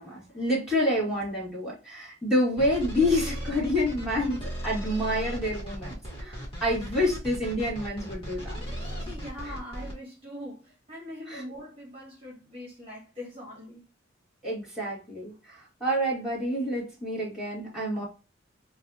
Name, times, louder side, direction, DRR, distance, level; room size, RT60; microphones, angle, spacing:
voice 1, 0.0-8.6 11.3-11.4 14.4-18.0, left 1 dB, 5° right, 1.8 m, -28 dB
sound 1, 2.6-9.9, equal, 30° left, 1.4 m, -36 dB
voice 2, 8.8-13.8, left 1 dB, 30° right, 1.4 m, -42 dB
4.1 x 2.4 x 2.7 m
head